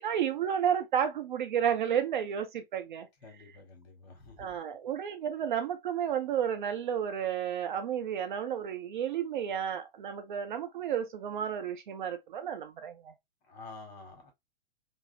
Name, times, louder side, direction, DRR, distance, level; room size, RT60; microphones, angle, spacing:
voice 1, 0.0-3.1 4.4-13.1, right 8 dB, 50° right, 0.6 m, -32 dB
voice 2, 3.2-4.5 13.5-14.3, left 3 dB, 40° left, 1.3 m, -49 dB
3.3 x 2.0 x 2.6 m
figure-of-eight pair, 110°, 31 cm